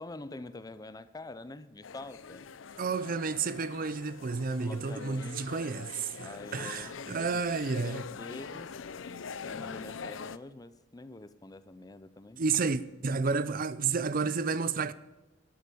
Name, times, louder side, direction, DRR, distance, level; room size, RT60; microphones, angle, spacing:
voice 1, 0.0-2.5 3.4-3.5 4.6-5.5 6.2-7.5 7.8-8.8 9.1-12.4 13.1-13.2, left 2 dB, 20° left, 0.5 m, -46 dB
sound 1, 1.8-10.4, left 6 dB, 85° left, 0.6 m, -44 dB
voice 2, 2.8-8.0 12.4-14.9, right 4 dB, 50° right, 0.6 m, -31 dB
11.5 x 8.2 x 6.9 m
head